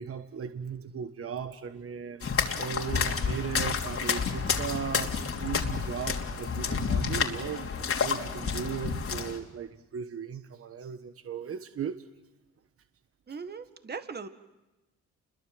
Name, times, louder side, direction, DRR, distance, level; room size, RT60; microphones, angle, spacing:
voice 1, 0.0-5.1 5.4-12.1 13.3-13.4, right 7 dB, 50° right, 10 dB, 1.3 m, -37 dB
sound 1, 2.2-9.4, left 5 dB, 50° left, 3.1 m, -30 dB
voice 2, 13.3-14.3, right 5 dB, 35° right, 10 dB, 1.8 m, -39 dB
29.0 x 22.5 x 7.9 m, 1.1 s
cardioid pair, 90°, 30 cm